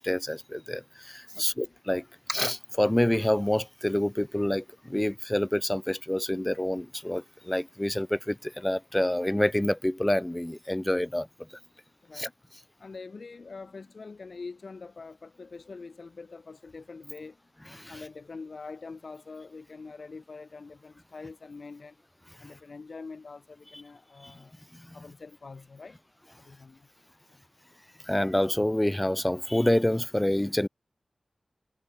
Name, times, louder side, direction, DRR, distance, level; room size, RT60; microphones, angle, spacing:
voice 1, 0.0-11.3 12.2-12.3 17.8-17.9 24.2-24.3 28.1-30.7, left 1 dB, 15° left, 0.8 m, -27 dB
voice 2, 1.3-1.7 12.0-12.3 12.8-17.4 17.9-22.0 22.4-24.6 24.9-26.0 26.4-26.9 27.3-27.4, left 4 dB, 75° left, 3.8 m, -44 dB
wide cardioid pair, 75°, 0 cm